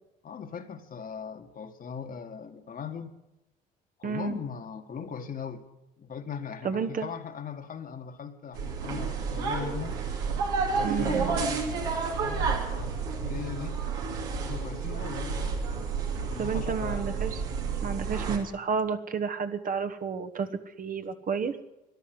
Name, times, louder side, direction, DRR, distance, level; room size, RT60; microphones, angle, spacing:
voice 1, 0.2-3.1 4.0-5.7 6.0-10.0 10.2-10.4 10.7-13.8 14.4-17.1, left 6 dB, 45° left, 6 dB, 1.7 m, -39 dB
voice 2, 4.0-4.4 6.6-7.1 10.8-11.4 16.4-17.4 17.8-20.5 20.8-21.6, right 6 dB, 45° right, 8 dB, 1.3 m, -31 dB
sound 1, 8.5-18.4, right 5 dB, 80° right, 2.6 m, -30 dB
13.5 x 11.0 x 9.4 m, 0.96 s
hypercardioid pair, 60°, 20 cm